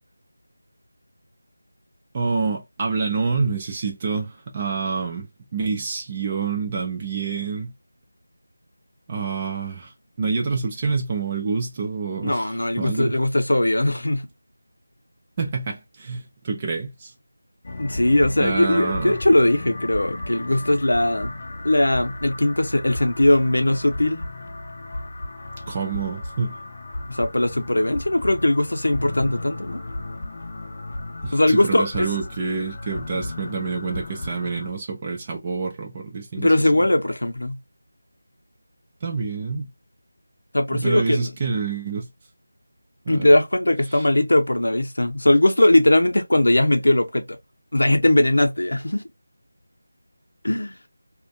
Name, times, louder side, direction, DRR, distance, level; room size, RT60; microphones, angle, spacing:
voice 1, 2.1-7.7 9.1-9.9 10.2-13.1 15.4-17.1 18.4-19.2 25.7-26.6 31.2-36.5 36.8-36.9 39.0-39.7 40.7-42.1 43.1-43.3 43.9-44.0, right 4 dB, 20° right, 0.4 m, -27 dB
voice 2, 12.2-14.3 17.8-21.3 21.6-24.2 27.1-29.8 31.3-32.1 36.4-37.6 40.5-41.3 43.1-47.4 47.7-49.0 50.4-50.8, left 1 dB, 85° left, 0.7 m, -19 dB
sound 1, 17.6-34.7, left 2 dB, 35° left, 0.5 m, -34 dB
2.5 x 2.1 x 2.6 m
figure-of-eight pair, 175°, 0 cm